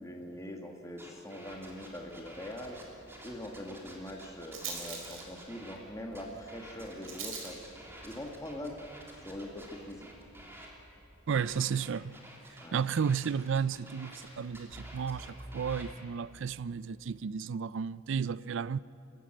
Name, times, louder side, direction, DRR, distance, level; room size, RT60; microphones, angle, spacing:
voice 1, 0.0-2.8 3.2-7.6 8.0-8.8 9.2-10.1 12.6-12.7, left 1 dB, 15° left, 1.6 m, -42 dB
sound 1, 1.0-5.8 6.1-10.7 11.3-15.9, right 1 dB, 10° right, 3.1 m, -50 dB
Rattle, 1.5-11.4, right 5 dB, 90° right, 4.1 m, -48 dB
voice 2, 11.3-12.2 12.5-18.8, right 6 dB, 65° right, 0.4 m, -33 dB
26.0 x 14.0 x 8.8 m
head